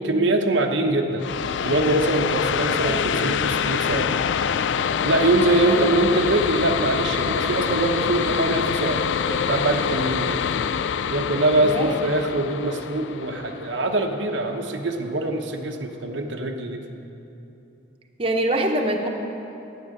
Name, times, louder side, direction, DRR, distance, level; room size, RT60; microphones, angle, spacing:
voice 1, 0.0-4.1 4.8-10.4 11.1-16.8, right 2 dB, 85° right, 3 dB, 0.9 m, -23 dB
sound 1, 1.2-14.6, left 7 dB, 80° left, 0.3 m, -25 dB
voice 2, 11.6-11.9 18.2-19.1, right 1 dB, 30° right, 2 dB, 0.8 m, -24 dB
12.5 x 9.4 x 6.5 m, 2.9 s
head